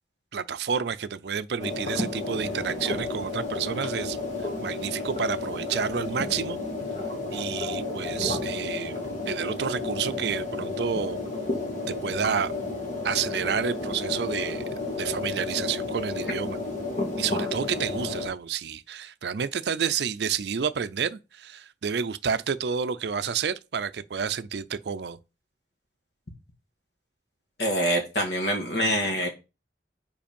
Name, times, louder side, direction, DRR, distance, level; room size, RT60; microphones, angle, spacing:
voice 1, 0.3-4.2 4.6-6.6 7.3-11.2 11.9-12.5 13.0-14.6 15.0-16.6 17.2-25.2, right 7 dB, 65° right, 0.5 m, -30 dB
sound 1, 1.6-18.3, left 3 dB, 45° left, 1.8 m, -32 dB
voice 2, 27.6-29.3, equal, 60° left, 1.9 m, -25 dB
5.2 x 4.7 x 5.2 m
head